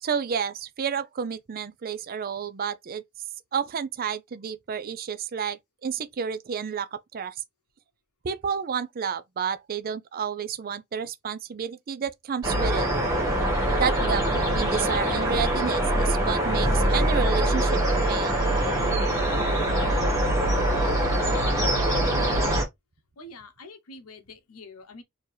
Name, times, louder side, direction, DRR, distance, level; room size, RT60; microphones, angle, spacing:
voice 1, 0.0-3.0 3.5-7.4 8.2-12.9 13.8-18.3, right 7 dB, 40° right, 0.4 m, -30 dB
sound 1, 12.4-22.6, right 1 dB, 15° right, 1.6 m, -23 dB
voice 2, 23.2-25.0, left 1 dB, 80° left, 0.9 m, -45 dB
4.3 x 2.9 x 3.2 m
head